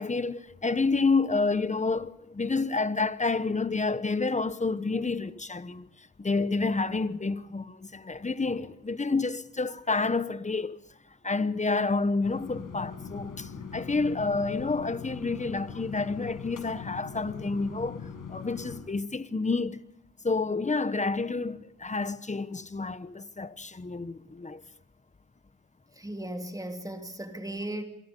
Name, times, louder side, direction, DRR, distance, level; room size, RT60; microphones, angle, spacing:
voice 1, 0.0-10.8 11.2-19.8 20.2-24.6, left 3 dB, 25° left, 1.1 m, -29 dB
sound 1, 12.2-18.8, left 6 dB, 85° left, 5.7 m, -41 dB
voice 2, 26.0-27.8, right 1 dB, 10° right, 3.1 m, -36 dB
27.5 x 22.0 x 5.5 m
cardioid pair, 75°, 31 cm